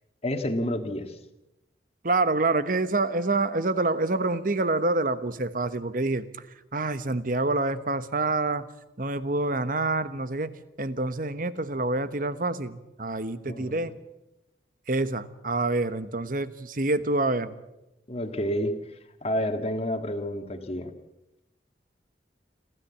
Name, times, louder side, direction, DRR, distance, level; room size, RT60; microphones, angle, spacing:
voice 1, 0.2-1.2 13.5-13.8 18.1-18.8 19.2-20.9, equal, 35° left, 7 dB, 1.8 m, -29 dB
voice 2, 2.0-6.3 6.7-8.7 9.0-10.5 10.8-13.9 14.9-17.5, right 2 dB, 50° right, 13 dB, 1.1 m, -27 dB
28.0 x 13.5 x 8.5 m, 0.97 s
head